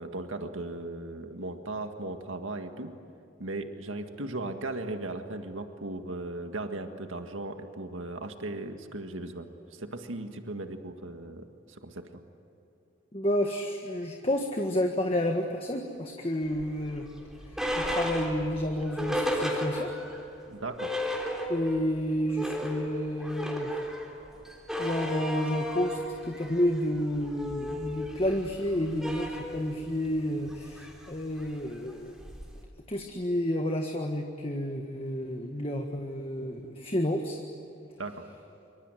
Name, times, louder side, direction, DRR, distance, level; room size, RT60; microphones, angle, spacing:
voice 1, 0.0-2.9 3.4-12.1 20.5-20.9 38.0-38.3, right 2 dB, 90° right, 6 dB, 1.9 m, -37 dB
voice 2, 13.1-17.1 17.5-19.9 21.5-23.8 24.8-32.2 32.9-37.4, left 1 dB, 30° left, 3 dB, 1.7 m, -30 dB
sound 1, 16.5-20.2 20.5-20.6 20.8-21.9 22.2-32.6, equal, 5° right, 3.6 m, -34 dB
26.5 x 24.5 x 9.1 m, 2.8 s
head